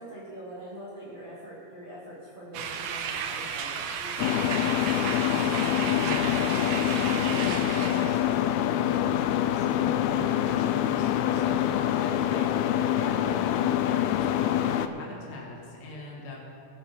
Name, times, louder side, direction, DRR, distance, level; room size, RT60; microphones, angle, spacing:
voice 1, 0.0-4.5 11.9-12.5, right 1 dB, 15° right, -9 dB, 2.5 m, -43 dB
sound 1, 2.5-8.3, right 7 dB, 70° right, 2.0 m, -34 dB
sound 2, 4.2-14.9, left 11 dB, 85° left, 2.5 m, -25 dB
voice 2, 5.1-12.4 13.0-16.4, left 2 dB, 35° left, -2 dB, 2.0 m, -40 dB
24.0 x 8.3 x 4.5 m, 2.7 s
omnidirectional pair, 4.3 m